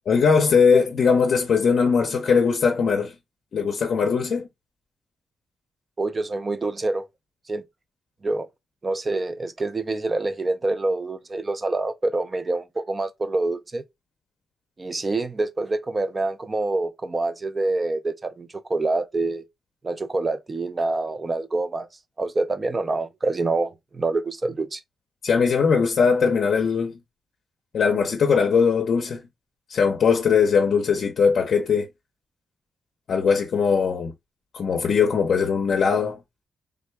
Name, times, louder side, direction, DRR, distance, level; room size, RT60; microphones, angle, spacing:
voice 1, 0.1-3.1 3.5-4.5 25.2-27.0 27.7-29.2 29.7-31.9 33.1-34.1 34.5-36.2, left 6 dB, 60° left, 0.6 m, -20 dB
voice 2, 6.0-7.1 7.5-7.6 8.2-8.5 8.8-13.8 14.8-19.4 19.8-21.9 22.2-24.8, right 2 dB, 25° right, 0.4 m, -26 dB
3.5 x 2.2 x 3.2 m
cardioid pair, 120°, 0 cm